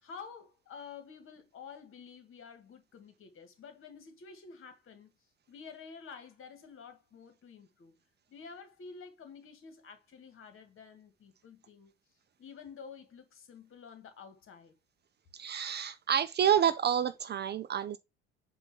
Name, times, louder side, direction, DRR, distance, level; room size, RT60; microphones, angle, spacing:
voice 1, 0.0-5.1 5.5-8.0 8.3-11.9 12.4-14.8, left 5 dB, 40° left, 1.9 m, -50 dB
voice 2, 15.3-18.0, right 9 dB, 30° right, 0.7 m, -28 dB
8.0 x 2.7 x 5.6 m
figure-of-eight pair, 60°, 33 cm